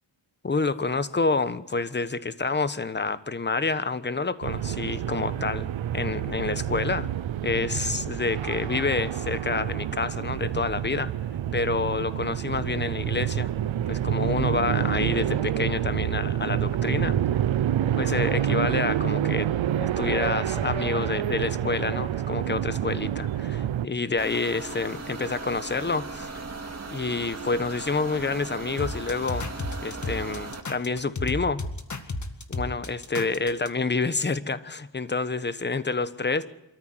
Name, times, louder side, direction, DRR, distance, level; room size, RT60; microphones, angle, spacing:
voice 1, 0.4-7.1 7.4-11.1 11.5-13.5 13.9-17.2 17.9-19.5 19.8-26.3 26.9-29.4 29.8-31.6 32.5-36.5, left 4 dB, 25° left, 14 dB, 1.2 m, -28 dB
sound 1, 4.4-23.9, right 10 dB, 85° right, 0.9 m, -28 dB
sound 2, 24.2-30.6, right 3 dB, 35° right, 2.4 m, -38 dB
sound 3, 28.8-33.7, left 2 dB, 40° left, 2.1 m, -33 dB
27.0 x 14.0 x 8.0 m, 0.91 s
wide cardioid pair, 105°, 46 cm